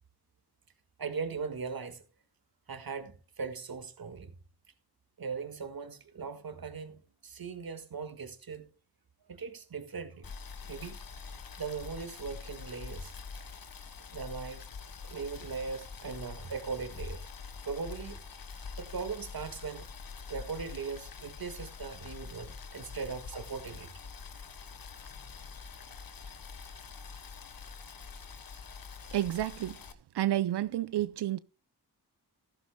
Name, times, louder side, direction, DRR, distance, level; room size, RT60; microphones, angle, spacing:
voice 1, 1.0-2.0 2.7-4.4 5.2-8.7 9.3-10.3 10.6-11.0 11.6-13.1 14.1-14.7 15.0-17.3 17.7-19.9 20.3-23.9, right 5 dB, 60° right, 1.8 m, -39 dB
Boiling, 10.2-29.9, left 5 dB, 55° left, 1.2 m, -45 dB
voice 2, 29.1-29.8 30.1-31.4, right 13 dB, 80° right, 0.5 m, -30 dB
15.0 x 14.0 x 2.2 m
cardioid pair, 45°, 40 cm